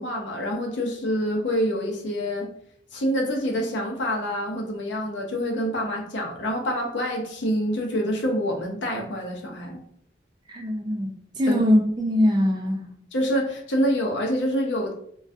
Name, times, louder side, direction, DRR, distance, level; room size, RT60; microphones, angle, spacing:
voice 1, 0.0-2.5 2.9-9.8 11.5-11.6 13.1-14.9, equal, 85° left, 1 dB, 0.6 m, -26 dB
voice 2, 10.5-12.9, left 1 dB, 25° right, 2 dB, 0.3 m, -22 dB
2.2 x 2.2 x 2.6 m, 0.66 s
head